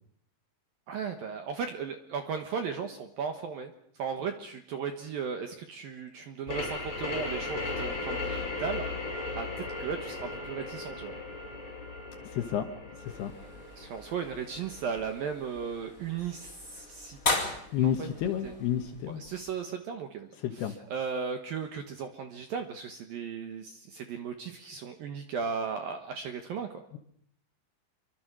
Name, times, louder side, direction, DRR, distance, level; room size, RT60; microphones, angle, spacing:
voice 1, 0.9-8.9 9.3-9.5 9.8-11.1 13.8-17.2 17.8-18.5 19.1-20.3 20.5-26.8, right 6 dB, 65° right, 6 dB, 2.4 m, -36 dB
sound 1, 6.5-15.8, left 3 dB, 35° left, 7.8 m, -37 dB
voice 2, 12.2-12.7 13.0-13.3 17.7-19.2 20.4-20.8, left 10 dB, 70° left, 7 dB, 2.8 m, -30 dB
sound 2, 13.0-19.5, left 2 dB, 15° left, 4.3 m, -38 dB
26.5 x 24.0 x 6.3 m, 0.67 s
omnidirectional pair, 5.7 m